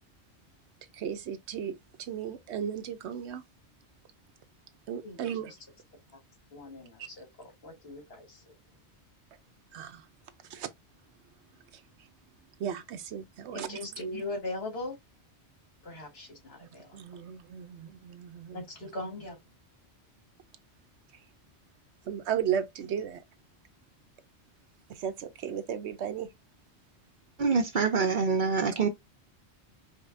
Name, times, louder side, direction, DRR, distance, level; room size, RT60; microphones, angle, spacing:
voice 1, 0.9-3.4 4.9-5.5 7.0-7.1 9.7-10.1 10.5-10.7 11.7-11.8 12.6-13.8 16.6-18.6 21.1-21.2 22.1-23.2 24.9-26.3, right 8 dB, 80° right, 0.9 m, -35 dB
voice 2, 5.0-5.5 6.5-8.6 13.5-14.9 15.8-17.0 18.5-19.4, left 2 dB, 65° left, 1.7 m, -40 dB
voice 3, 27.4-28.9, right 5 dB, 50° right, 0.7 m, -25 dB
5.1 x 2.3 x 2.5 m
omnidirectional pair, 1.1 m